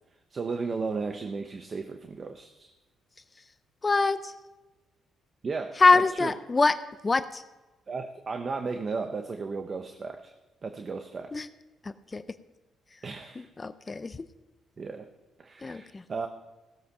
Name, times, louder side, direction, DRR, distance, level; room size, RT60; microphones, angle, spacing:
voice 1, 0.3-2.7 5.4-5.8 6.2-6.3 7.9-10.3 10.6-11.4 13.0-13.5 14.8-15.1 15.4-16.3, right 4 dB, 40° right, 7 dB, 0.9 m, -34 dB
voice 2, 3.8-4.3 5.8-6.8 7.0-7.4 11.3-11.5 11.8-12.2 12.9-13.0 13.4-14.2 15.6-16.0, left 3 dB, 25° left, 12 dB, 0.6 m, -24 dB
17.0 x 7.8 x 5.6 m, 1.1 s
cardioid pair, 90°, 0 cm